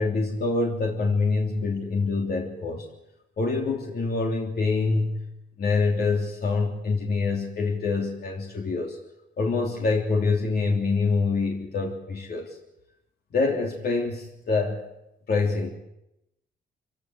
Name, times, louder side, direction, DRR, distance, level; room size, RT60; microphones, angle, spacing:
voice 1, 0.0-2.9 3.4-5.3 5.6-9.0 9.4-12.6 13.3-14.8 15.3-15.7, left 3 dB, 55° left, 0 dB, 3.3 m, -25 dB
25.5 x 17.0 x 8.3 m, 0.86 s
wide cardioid pair, 155°, 19 cm